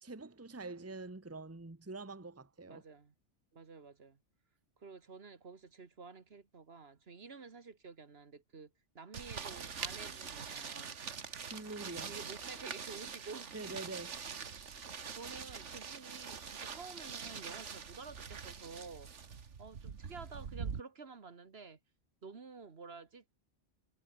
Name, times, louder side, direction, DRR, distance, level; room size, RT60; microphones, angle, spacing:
voice 1, 0.0-2.8 10.5-11.0 11.4-12.2 13.5-14.2, right 3 dB, 10° right, 1.2 m, -46 dB
voice 2, 2.7-3.1 3.5-4.2 4.8-11.0 12.1-13.6 15.2-19.1 19.6-21.8 22.2-23.3, right 4 dB, 55° right, 1.7 m, -51 dB
sound 1, 9.1-20.8, right 6 dB, 75° right, 1.8 m, -44 dB
omnidirectional pair, 1.2 m